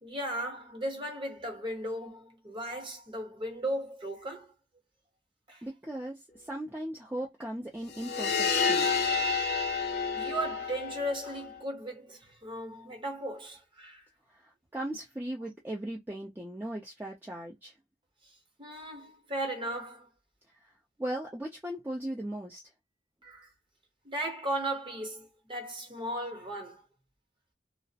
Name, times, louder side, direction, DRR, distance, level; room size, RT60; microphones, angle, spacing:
voice 1, 0.0-4.5 5.5-5.7 10.1-14.1 18.6-20.1 23.2-23.5 24.0-26.8, right 1 dB, 30° right, 0.9 m, -36 dB
voice 2, 5.6-9.1 14.7-17.7 21.0-22.6, right 1 dB, 10° right, 0.5 m, -38 dB
sound 1, 7.9-11.6, left 5 dB, 60° left, 0.7 m, -29 dB
2.4 x 2.0 x 2.7 m
head